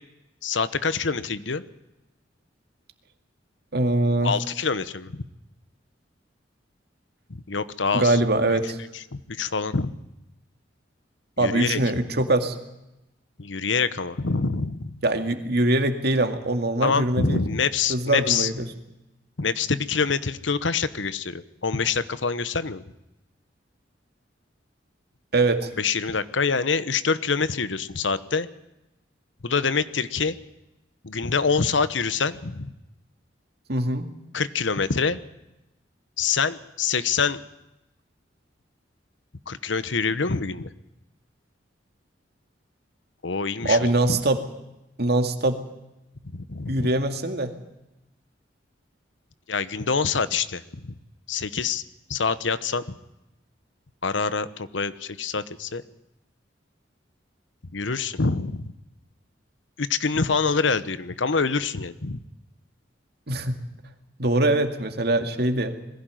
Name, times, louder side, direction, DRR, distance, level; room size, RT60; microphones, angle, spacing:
voice 1, 0.4-1.6 4.2-5.2 7.3-8.2 9.3-9.9 11.4-11.8 13.4-15.0 16.8-18.5 19.4-22.8 25.8-28.5 29.4-30.4 31.0-32.7 34.3-35.2 36.2-37.4 39.5-40.7 43.2-44.2 46.3-46.9 49.5-50.9 51.3-51.8 52.1-52.8 54.0-55.8 57.7-58.7 59.8-62.2, left 5 dB, 85° left, 14 dB, 1.1 m, -25 dB
voice 2, 3.7-4.3 7.9-8.8 11.4-12.6 15.0-17.4 17.9-18.7 25.3-25.7 33.7-34.1 43.6-44.4 45.0-45.6 46.7-47.5 63.3-63.6 64.2-65.8, right 2 dB, 60° right, 6 dB, 2.2 m, -23 dB
21.5 x 16.0 x 9.2 m, 0.94 s
head